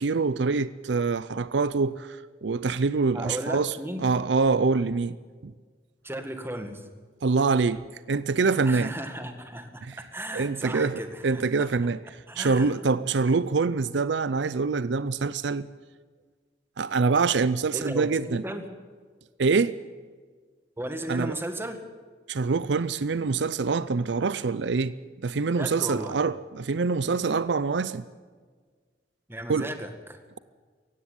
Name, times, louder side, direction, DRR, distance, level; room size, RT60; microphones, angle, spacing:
voice 1, 0.0-5.2 5.4-5.5 7.2-7.8 8.1-8.9 9.8-10.0 10.3-15.7 16.8-18.4 19.4-19.7 21.1-21.4 22.3-28.0 29.5-29.7, right 4 dB, 70° right, 0.5 m, -25 dB
voice 2, 3.1-4.0 6.0-6.8 8.6-11.7 12.3-12.7 17.7-18.6 20.8-21.8 25.6-26.2 29.3-30.2, right 1 dB, 15° right, 1.9 m, -35 dB
17.5 x 15.5 x 9.7 m
head